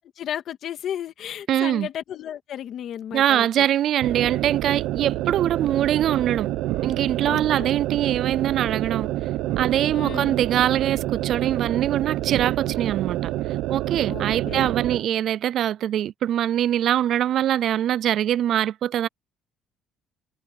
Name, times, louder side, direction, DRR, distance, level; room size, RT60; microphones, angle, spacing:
voice 1, 0.2-3.7 7.2-7.7 9.9-10.4 14.1-14.7, left 10 dB, 50° left, 2.0 m, -34 dB
voice 2, 1.5-1.9 3.1-6.5 6.8-9.1 9.6-13.3 13.7-19.1, right 11 dB, 50° right, 0.3 m, -23 dB
sound 1, 4.0-15.1, right 15 dB, 80° right, 0.9 m, -27 dB
cardioid pair, 150°, 0 cm